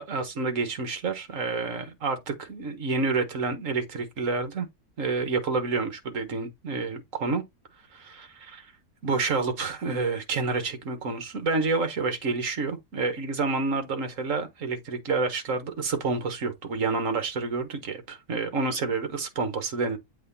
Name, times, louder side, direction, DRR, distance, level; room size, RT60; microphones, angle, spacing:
voice 1, 0.0-4.7 5.0-7.4 7.9-8.7 9.0-20.0, right 4 dB, 60° right, 1.8 m, -29 dB
7.8 x 3.1 x 4.1 m
omnidirectional pair, 1.6 m